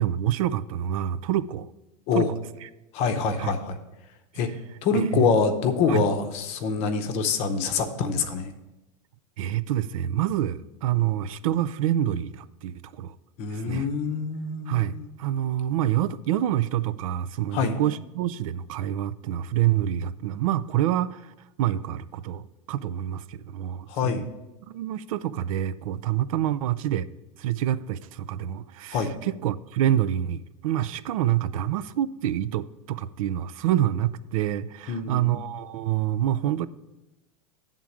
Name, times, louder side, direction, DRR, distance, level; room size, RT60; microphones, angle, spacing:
voice 1, 0.0-1.7 2.1-2.7 3.4-3.5 4.9-5.3 5.9-6.0 9.4-13.2 13.5-13.9 14.7-21.3 21.6-24.3 24.7-27.1 27.4-36.7, right 12 dB, 75° right, 15 dB, 0.4 m, -27 dB
voice 2, 2.9-3.8 4.4-4.5 4.8-8.5 13.4-15.1 17.5-17.8 23.9-24.2 28.9-29.1 34.9-35.4, left 5 dB, 35° left, 7 dB, 0.7 m, -25 dB
9.0 x 3.7 x 7.1 m, 0.99 s
supercardioid pair, 165°, 18 cm